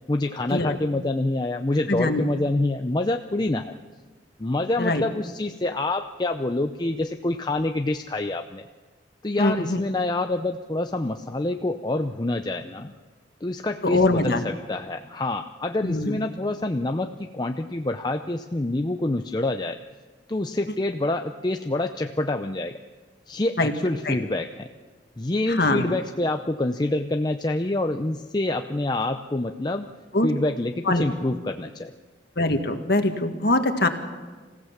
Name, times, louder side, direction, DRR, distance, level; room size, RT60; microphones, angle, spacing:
voice 1, 0.1-3.7 4.4-8.6 9.2-12.9 13.4-19.8 20.3-22.8 23.3-24.7 25.2-29.9 30.2-31.9, left 2 dB, 25° left, 6 dB, 0.6 m, -26 dB
voice 2, 1.9-2.2 4.8-5.0 9.4-9.8 13.8-14.4 15.8-16.2 23.6-23.7 24.1-24.2 25.5-25.9 30.1-30.3 30.9-31.0 32.4-33.9, left 2 dB, 60° left, 6 dB, 1.8 m, -22 dB
26.5 x 16.0 x 7.3 m, 1.4 s
head